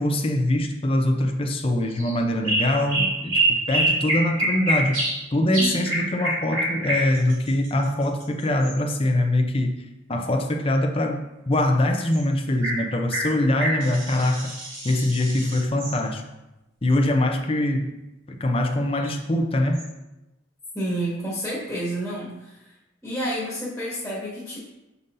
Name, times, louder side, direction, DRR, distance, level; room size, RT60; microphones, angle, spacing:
voice 1, 0.0-5.0 5.3-9.8 10.1-14.5 14.8-16.2 16.8-18.0 18.3-19.9, left 1 dB, 30° left, 4 dB, 0.5 m, -23 dB
sound 1, 1.9-2.1 2.4-5.2 5.5-8.7 12.1-12.2 12.6-12.8 13.1-16.0 19.0-19.1 19.7-19.9, right 1 dB, 80° right, 2.2 m, -26 dB
voice 2, 20.7-22.6 23.0-24.6, right 1 dB, 5° left, -8 dB, 1.5 m, -29 dB
6.9 x 5.4 x 2.6 m, 0.96 s
head